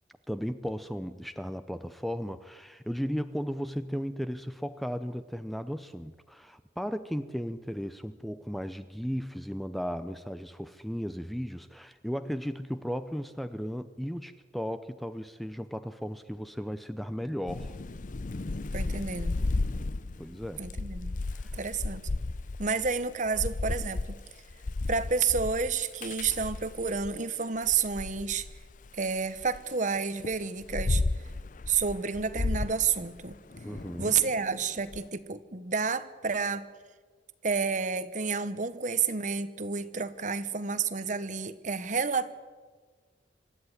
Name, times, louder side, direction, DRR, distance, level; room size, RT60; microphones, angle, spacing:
voice 1, 0.3-17.8 20.2-20.7 21.3-21.6 33.6-34.1, equal, ahead, 11 dB, 0.6 m, -35 dB
Thunder / Rain, 17.5-27.2 27.6-29.6 30.2-35.0, left 2 dB, 45° left, 0.6 m, -34 dB
voice 2, 18.7-19.3 20.6-21.1 21.5-22.0 22.6-24.2 24.9-28.5 28.9-31.0 31.7-33.4 34.0-36.7 37.4-42.3, right 5 dB, 40° right, 14 dB, 1.0 m, -30 dB
25.5 x 13.0 x 9.9 m, 1.5 s
head